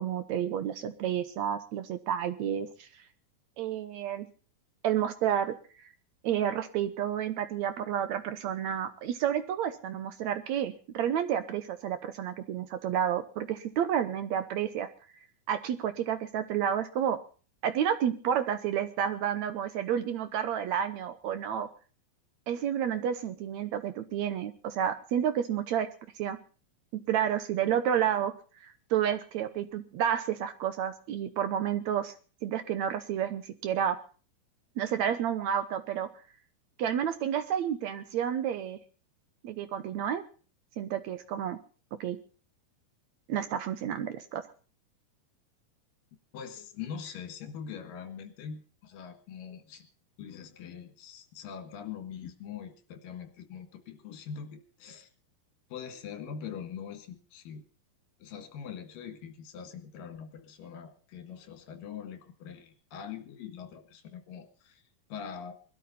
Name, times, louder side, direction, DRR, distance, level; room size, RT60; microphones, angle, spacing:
voice 1, 0.0-2.9 3.6-4.3 4.8-5.5 6.2-14.9 15.5-17.2 17.6-21.7 22.5-25.9 26.1-26.4 27.1-28.3 28.6-32.1 32.4-34.0 34.8-36.1 36.8-38.8 39.4-40.2 40.8-41.6 42.0-42.2 43.3-44.4, right 9 dB, 75° right, 10 dB, 1.7 m, -30 dB
voice 2, 46.3-49.8 50.2-55.1 55.7-57.6 58.2-64.8 65.1-65.5, left 7 dB, 70° left, 7 dB, 3.4 m, -43 dB
21.0 x 12.5 x 4.2 m, 0.38 s
omnidirectional pair, 4.3 m